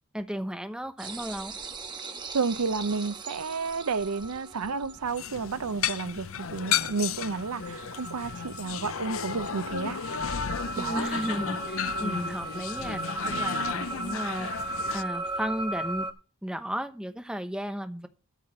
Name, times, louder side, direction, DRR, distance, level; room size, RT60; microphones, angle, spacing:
voice 1, 0.1-1.5 10.8-14.5 14.9-16.1 16.4-18.1, equal, 5° right, 0.9 m, -34 dB
sound 1, 1.0-16.1, right 2 dB, 20° right, 1.2 m, -37 dB
voice 2, 2.3-10.0 10.8-11.1, right 4 dB, 85° right, 0.7 m, -31 dB
sound 2, 5.1-15.0, left 8 dB, 60° left, 0.6 m, -34 dB
13.0 x 4.8 x 7.3 m
head